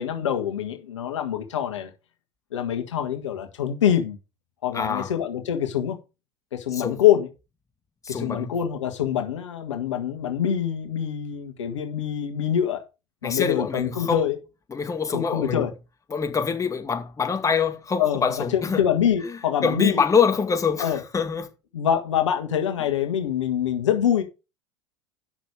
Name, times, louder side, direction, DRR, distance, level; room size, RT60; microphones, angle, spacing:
voice 1, 0.0-1.9 2.5-4.2 4.6-6.0 6.5-7.3 8.1-12.8 13.2-14.3 15.1-15.7 18.0-20.0 20.8-21.0 21.7-24.2, left 9 dB, 80° left, 1.5 m, -25 dB
voice 2, 4.7-5.1 6.7-7.0 8.0-8.5 13.2-14.3 14.7-15.6 16.1-18.8 19.3-21.5, left 6 dB, 20° left, 2.0 m, -25 dB
8.8 x 6.3 x 4.8 m
hypercardioid pair, 85°, 15 cm